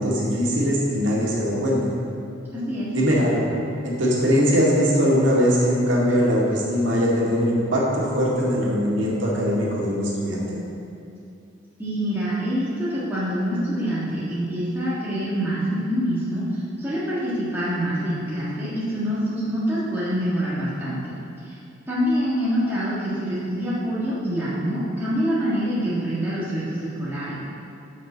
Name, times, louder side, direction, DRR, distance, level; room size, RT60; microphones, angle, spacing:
voice 1, 0.0-1.8 2.9-3.4 3.8-10.6, equal, 65° right, -5 dB, 2.1 m, -21 dB
voice 2, 2.5-2.9 11.8-21.2 21.4-21.6 21.9-27.4, equal, 10° right, -11 dB, 1.6 m, -25 dB
6.9 x 6.3 x 6.2 m, 2.6 s
head